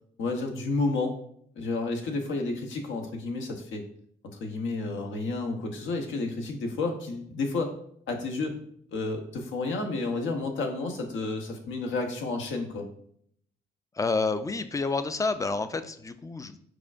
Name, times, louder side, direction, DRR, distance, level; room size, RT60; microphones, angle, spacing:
voice 1, 0.2-1.2 1.6-3.8 4.4-7.7 8.1-8.6 8.9-12.9, left 3 dB, 75° left, 3 dB, 0.9 m, -31 dB
voice 2, 14.0-16.6, left 3 dB, 15° left, 11 dB, 0.3 m, -29 dB
4.8 x 4.3 x 2.4 m, 0.66 s
cardioid pair, 90°, 20 cm